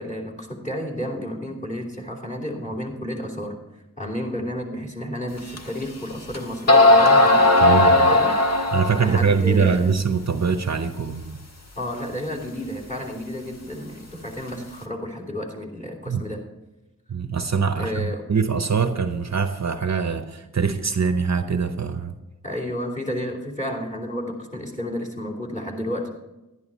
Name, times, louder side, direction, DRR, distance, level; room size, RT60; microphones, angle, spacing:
voice 1, 0.0-3.5 4.0-8.6 8.9-10.0 11.7-16.4 17.8-18.3 22.4-26.1, equal, 20° left, 1 dB, 3.1 m, -31 dB
sound 1, 5.6-5.7 6.3-6.4 6.7-9.1, left 2 dB, 45° left, 1.6 m, -16 dB
voice 2, 7.6-8.0 8.7-11.4 16.1-16.2 17.1-22.1, right 5 dB, 50° right, 8 dB, 0.8 m, -23 dB
11.5 x 11.0 x 4.1 m, 1.0 s
wide cardioid pair, 65°, 35 cm